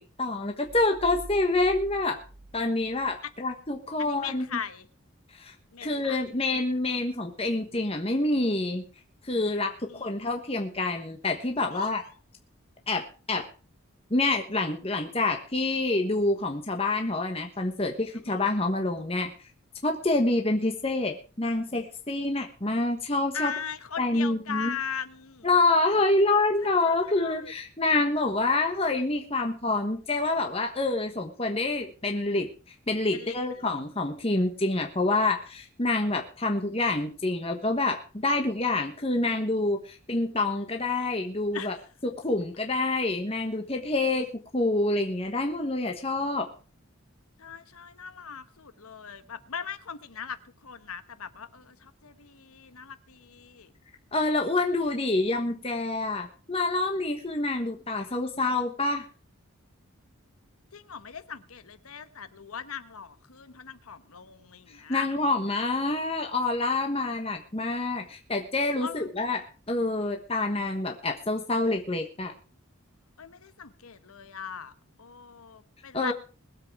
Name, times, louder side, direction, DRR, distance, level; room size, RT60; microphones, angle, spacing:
voice 1, 0.2-2.2 2.5-4.6 5.3-5.5 5.8-8.8 9.2-12.0 12.9-13.5 14.1-19.3 19.8-23.5 24.0-24.7 25.4-41.7 42.0-44.3 44.5-46.5 54.1-59.1 64.7-72.3 75.9-76.1, left 2 dB, 25° left, 1.3 m, -27 dB
sound 1, 0.6-3.3, right 1 dB, 70° right, 1.7 m, -46 dB
voice 2, 4.0-4.9 5.7-6.6 9.9-10.1 11.7-12.0 18.3-18.4 23.3-25.5 26.6-27.5 33.1-33.7 41.5-41.7 47.4-53.7 60.7-65.1 68.8-69.1 73.2-74.7 75.0-76.1, left 7 dB, 90° left, 1.1 m, -39 dB
21.5 x 7.7 x 4.8 m
head